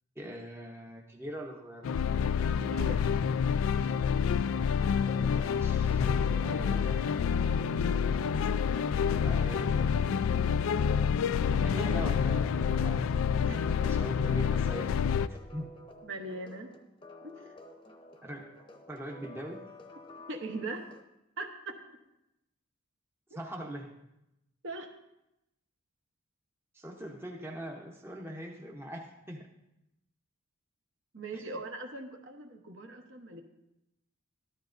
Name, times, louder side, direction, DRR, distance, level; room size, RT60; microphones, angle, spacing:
voice 1, 0.2-1.9 5.2-6.1 6.4-7.2 9.1-10.3 11.5-13.0 13.8-15.0 15.3-15.7 18.2-18.5 18.9-19.6 23.3-23.9 26.7-29.5 31.3-31.6, right 1 dB, 10° right, 0 dB, 0.8 m, -42 dB
sound 1, 1.8-15.3, left 7 dB, 70° left, 0.3 m, -28 dB
voice 2, 2.6-3.0 13.4-13.6 16.0-16.7 17.2-17.5 20.3-20.8 21.4-21.8 24.6-24.9 31.1-33.4, right 2 dB, 60° right, 3 dB, 1.0 m, -40 dB
sound 2, 4.8-21.0, left 1 dB, 20° left, 0.8 m, -52 dB
13.5 x 12.0 x 2.5 m, 0.88 s
head